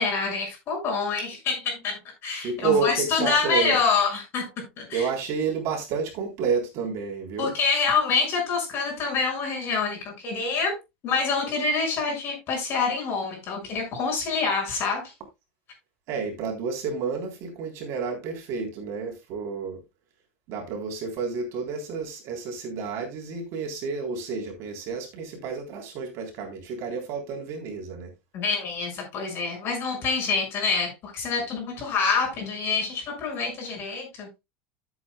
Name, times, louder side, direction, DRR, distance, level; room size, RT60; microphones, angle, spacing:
voice 1, 0.0-4.5 4.8-5.0 7.4-10.8 11.0-15.1 28.3-34.3, left 4 dB, 35° left, 6.3 m, -26 dB
voice 2, 2.4-3.8 4.9-7.5 16.1-19.8 20.5-28.1, right 5 dB, 45° right, 3.6 m, -30 dB
13.5 x 8.1 x 2.3 m
supercardioid pair, 150°, 7 cm